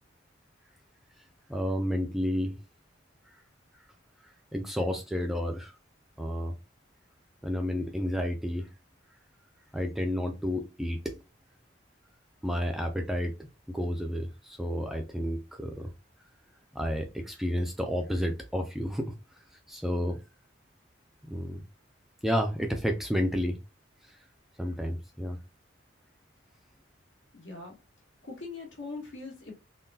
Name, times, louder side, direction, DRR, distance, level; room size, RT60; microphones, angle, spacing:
voice 1, 1.5-2.6 4.2-5.7 6.2-6.5 7.4-8.7 9.7-11.2 12.4-15.9 16.7-19.1 19.7-20.2 21.3-21.6 22.2-23.6 24.0-24.2 24.6-25.4, equal, ahead, 0.3 m, -31 dB
voice 2, 27.3-27.8 28.3-29.5, left 3 dB, 70° left, 1.3 m, -41 dB
3.6 x 2.2 x 2.6 m
head